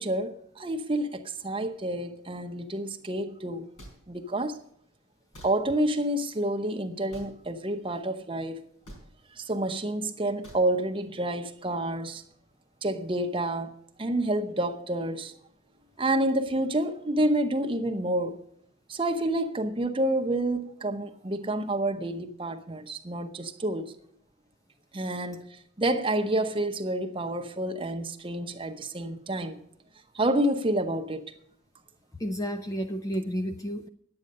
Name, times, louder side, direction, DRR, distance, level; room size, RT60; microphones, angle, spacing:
voice 1, 0.0-3.7 4.1-4.6 5.4-8.6 9.4-12.2 12.8-13.7 14.0-15.3 16.0-18.4 18.9-23.9 24.9-29.6 30.1-31.2, right 1 dB, 25° right, 0.7 m, -29 dB
sound 1, 3.8-4.0 5.3-5.5 7.1-7.3 8.8-9.0 10.4-10.6, right 1 dB, 80° left, 4.5 m, -45 dB
voice 2, 32.2-33.9, equal, 15° left, 0.4 m, -31 dB
10.5 x 8.8 x 6.5 m
head